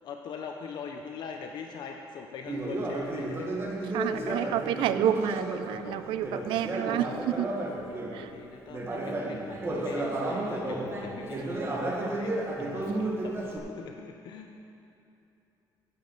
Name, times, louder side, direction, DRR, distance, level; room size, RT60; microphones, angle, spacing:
voice 1, 0.0-3.5 3.8-4.5 5.8-6.6 7.9-14.6, left 6 dB, 65° left, 3 dB, 0.7 m, -43 dB
Conversation, 2.5-8.2 8.7-13.6, right 2 dB, 30° right, 1.3 m, -33 dB
voice 2, 3.9-7.5 8.1-8.3 12.9-13.2, right 11 dB, 85° right, 12 dB, 0.5 m, -30 dB
15.0 x 7.5 x 3.9 m, 2.8 s
cardioid pair, 120°, 8 cm